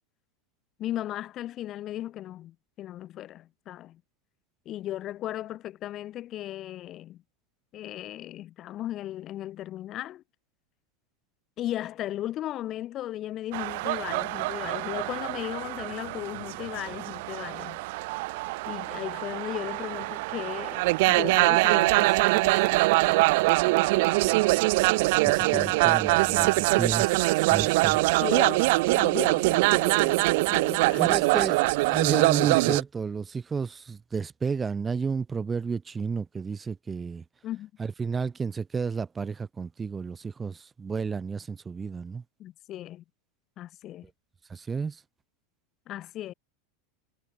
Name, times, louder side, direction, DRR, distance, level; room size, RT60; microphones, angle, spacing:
voice 1, 0.8-4.0 4.7-7.2 7.7-10.2 11.6-17.8 18.7-22.5 23.1-23.3 24.1-24.4 25.4-26.1 28.2-31.2 37.4-37.7 42.4-43.0 43.6-44.1 45.9-46.3, left 13 dB, 25° left, 4.3 m, -36 dB
sound 1, 13.5-32.8, right 23 dB, 55° right, 3.8 m, -24 dB
voice 2, 24.9-28.0 31.0-37.2 37.8-42.2 44.5-45.0, right 5 dB, 10° right, 4.0 m, -32 dB
supercardioid pair, 165°, 0 cm